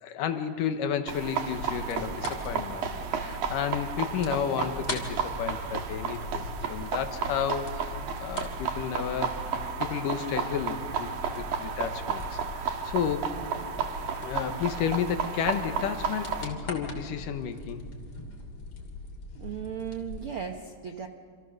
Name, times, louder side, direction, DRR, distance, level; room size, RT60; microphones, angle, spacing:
voice 1, 0.0-11.1 11.4-13.3 14.2-17.8, left 8 dB, 75° left, 8 dB, 2.8 m, -32 dB
sound 1, 1.1-16.5, right 6 dB, 85° right, 3.4 m, -33 dB
sound 2, 1.5-20.3, left 2 dB, 45° left, 3.5 m, -41 dB
voice 2, 19.3-21.1, right 8 dB, 70° right, 5 dB, 1.3 m, -36 dB
27.5 x 27.5 x 6.7 m, 2.1 s
omnidirectional pair, 3.9 m